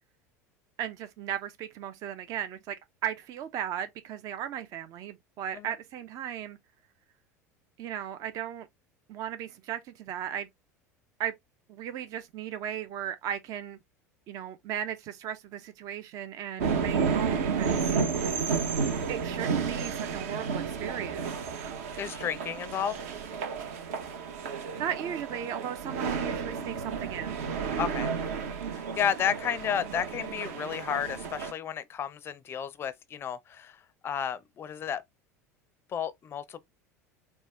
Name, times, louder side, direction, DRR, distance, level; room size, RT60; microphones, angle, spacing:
voice 1, 0.8-2.8 3.0-6.6 7.8-8.7 9.1-10.5 11.2-11.3 11.7-13.8 14.3-17.9 19.1-21.3 24.8-27.4, right 10 dB, 40° right, 0.4 m, -36 dB
sound 1, 16.6-31.5, right 5 dB, 60° right, 0.8 m, -32 dB
voice 2, 22.0-22.9 27.8-28.1 28.7-33.8 34.0-35.0 35.9-36.6, left 8 dB, 25° left, 0.4 m, -32 dB
4.1 x 2.2 x 3.2 m
figure-of-eight pair, 75°, 9 cm